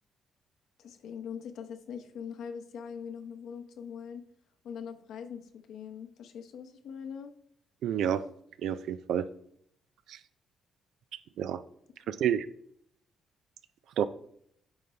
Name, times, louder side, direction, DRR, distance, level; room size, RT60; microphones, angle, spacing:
voice 1, 0.8-4.2 4.6-7.3 12.0-12.1, left 7 dB, 80° left, 6 dB, 0.8 m, -42 dB
voice 2, 7.8-8.2 8.6-9.3 10.1-10.2 11.4-11.6 12.1-12.5 14.0-14.1, right 9 dB, 80° right, 13 dB, 0.4 m, -29 dB
9.2 x 5.7 x 3.3 m, 0.69 s
cardioid pair, 105°, 0 cm